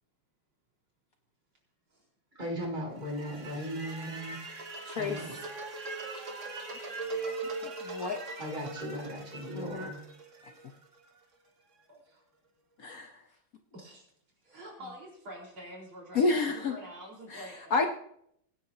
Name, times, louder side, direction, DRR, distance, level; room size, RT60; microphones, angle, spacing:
voice 1, 2.3-4.4 4.9-5.3 8.4-10.0, equal, 20° right, -1 dB, 3.2 m, -37 dB
sound 1, 3.0-11.1, right 3 dB, 40° right, 1.7 m, -40 dB
voice 2, 4.9-5.2 7.8-8.2 9.5-9.9 12.8-13.2 16.1-16.7 17.3-17.4 17.7-17.9, left 3 dB, 55° left, 5 dB, 1.2 m, -29 dB
voice 3, 11.9-12.2 13.7-14.0 14.4-17.9, right 1 dB, 80° right, -2 dB, 5.2 m, -47 dB
24.5 x 9.7 x 2.8 m, 0.69 s
omnidirectional pair, 2.2 m